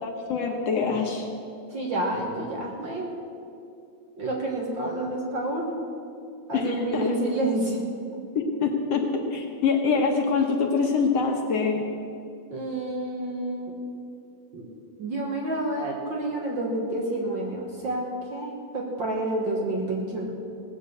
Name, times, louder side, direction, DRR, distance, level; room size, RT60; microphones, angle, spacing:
voice 1, 0.0-1.3 6.5-7.2 8.4-9.0 9.3-11.8, left 5 dB, 60° left, 2 dB, 2.1 m, -25 dB
voice 2, 1.7-3.2 4.2-5.8 6.5-7.8 12.5-13.8 14.5-14.7 15.0-20.3, right 1 dB, 45° right, -1 dB, 1.8 m, -29 dB
18.0 x 7.4 x 8.3 m, 2.5 s
omnidirectional pair, 3.5 m